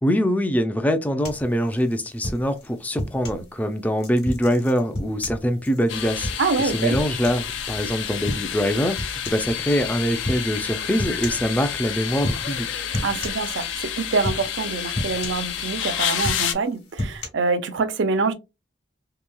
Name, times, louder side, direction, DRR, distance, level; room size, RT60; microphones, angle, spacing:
voice 1, 0.0-6.3 6.6-12.8, equal, 10° left, 0.3 m, -24 dB
sound 1, 1.2-3.5 4.0-7.8 8.3-8.7 9.0-9.5 10.2-10.5 11.0-11.5 12.2-12.6 12.9-13.9 14.2-14.6 14.9-15.8 16.2-17.3, left 1 dB, 55° left, 1.1 m, -31 dB
sound 2, 5.9-16.5, left 9 dB, 75° left, 0.4 m, -29 dB
voice 2, 6.4-7.0 13.0-18.3, right 4 dB, 75° right, 0.5 m, -25 dB
3.0 x 2.7 x 2.2 m
head